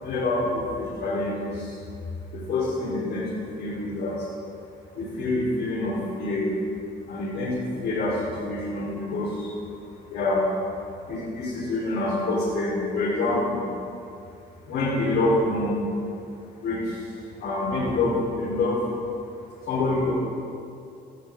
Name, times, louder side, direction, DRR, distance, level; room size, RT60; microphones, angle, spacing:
voice 1, 0.0-1.7 2.3-4.2 5.0-6.5 7.1-9.5 10.1-10.4 11.1-13.7 14.7-15.8 16.6-17.0 17.4-18.8 19.7-20.1, left 2 dB, 85° left, -9 dB, 4.2 m, -26 dB
20.5 x 12.0 x 3.9 m, 2.6 s
cardioid pair, 120°, 18 cm